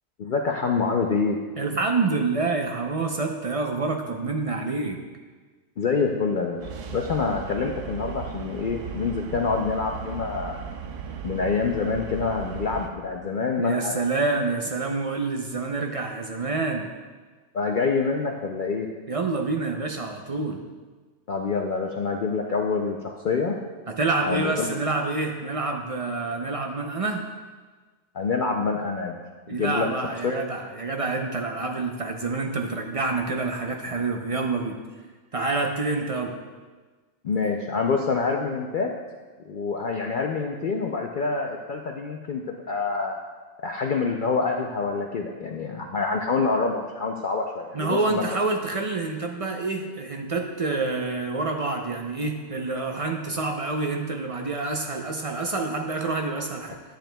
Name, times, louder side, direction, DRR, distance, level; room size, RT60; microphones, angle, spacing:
voice 1, 0.2-1.4 5.8-6.6 6.9-10.6 11.2-13.9 17.5-18.9 21.3-23.6 24.3-24.7 28.1-29.2 29.5-29.9 30.2-30.3 37.2-38.9 39.5-43.2 43.6-48.2, left 4 dB, 60° left, 1 dB, 0.5 m, -26 dB
voice 2, 1.6-5.0 13.6-16.9 19.1-20.6 23.9-27.3 29.5-34.8 35.3-36.3 47.7-56.8, right 3 dB, 50° right, 3 dB, 0.4 m, -27 dB
sound 1, 6.6-12.9, right 7 dB, 80° right, 1.0 m, -37 dB
10.5 x 8.9 x 2.2 m, 1.4 s
omnidirectional pair, 1.3 m